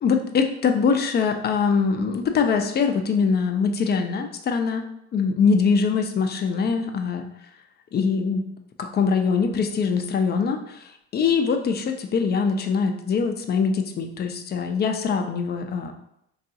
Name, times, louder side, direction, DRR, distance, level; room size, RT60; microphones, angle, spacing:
voice 1, 0.0-4.8 5.1-7.3 7.9-8.5 8.8-15.9, left 5 dB, 30° left, 6 dB, 0.4 m, -23 dB
3.6 x 2.3 x 2.7 m, 0.78 s
supercardioid pair, 80°, 35 cm